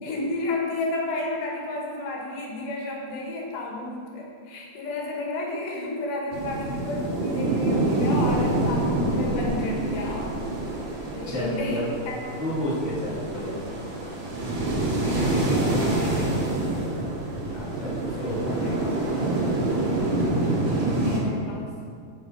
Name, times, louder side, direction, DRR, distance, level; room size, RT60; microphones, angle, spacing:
voice 1, 0.0-10.3 10.6-10.7 11.1-12.2 13.5-13.6 15.0-16.5 18.1-18.3 18.6-19.0 20.8-21.9, left 2 dB, 75° left, -2 dB, 4.0 m, -32 dB
sound 1, 6.3-21.2, right 2 dB, 50° right, 2.9 m, -26 dB
voice 2, 11.2-11.8 12.4-13.9 17.4-18.6, equal, 5° right, -10 dB, 2.7 m, -31 dB
16.5 x 7.4 x 4.9 m, 2.1 s
omnidirectional pair, 5.2 m